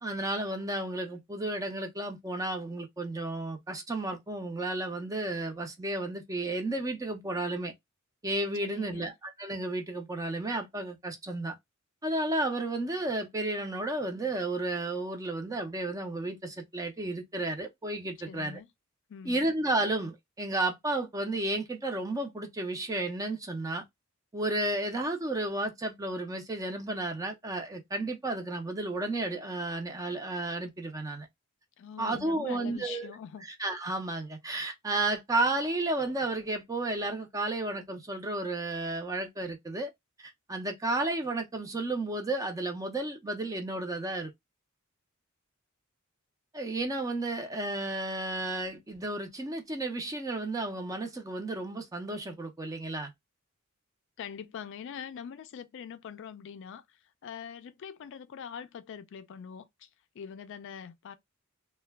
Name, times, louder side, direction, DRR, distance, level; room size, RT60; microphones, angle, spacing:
voice 1, 0.0-7.7 8.2-11.5 12.0-18.6 19.2-23.8 24.3-31.3 32.0-33.1 33.4-39.9 40.2-44.3 46.5-53.1, right 2 dB, 15° right, 0.4 m, -32 dB
voice 2, 8.6-9.1 18.2-18.7 19.1-19.5 31.8-33.5 54.2-59.9 60.1-61.2, left 7 dB, 60° left, 0.3 m, -43 dB
2.2 x 2.1 x 3.3 m
head